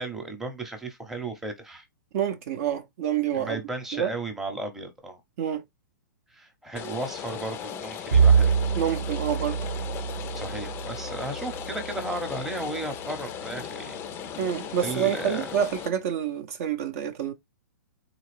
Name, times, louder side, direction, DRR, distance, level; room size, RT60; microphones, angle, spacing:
voice 1, 0.0-1.9 3.3-5.2 6.3-8.5 10.3-14.0 14.7-15.5, right 2 dB, 5° right, 0.7 m, -35 dB
voice 2, 2.1-3.6 3.9-4.1 5.4-5.6 8.8-9.6 14.4-17.3, right 9 dB, 50° right, 0.5 m, -27 dB
Rain, 6.8-15.9, left 8 dB, 20° left, 0.4 m, -37 dB
Bowed string instrument, 8.1-12.7, right 6 dB, 75° right, 1.0 m, -25 dB
3.7 x 2.4 x 3.2 m
hypercardioid pair, 130°, 10 cm